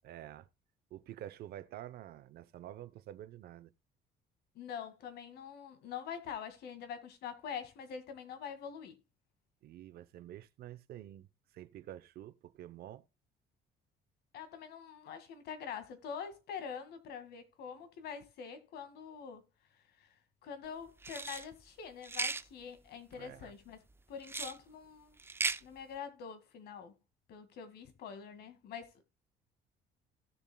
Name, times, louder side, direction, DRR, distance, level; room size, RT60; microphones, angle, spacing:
voice 1, 0.0-0.5 0.9-3.7 9.6-13.0 23.1-23.5, right 12 dB, 65° right, 0.8 m, -49 dB
voice 2, 4.6-9.0 14.3-19.4 20.0-20.1 20.4-23.8 24.1-25.2 25.6-26.9 27.3-29.0, left 7 dB, 75° left, 2.0 m, -45 dB
sound 1, 21.0-21.4 22.0-22.4 24.2-24.6 25.2-25.6, right 3 dB, 15° right, 0.5 m, -36 dB
17.0 x 7.1 x 2.3 m
cardioid pair, 110°, 17 cm